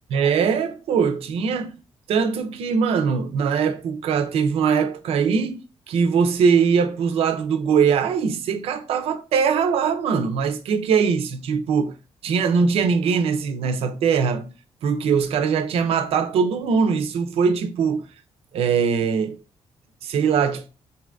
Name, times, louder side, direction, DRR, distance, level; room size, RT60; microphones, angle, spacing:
voice 1, 0.1-1.7 2.1-11.9 12.2-14.5 14.8-18.0 18.5-19.4 20.0-20.7, right 6 dB, 75° right, 0.5 m, -21 dB
3.4 x 2.6 x 2.4 m
cardioid pair, 155°, 10 cm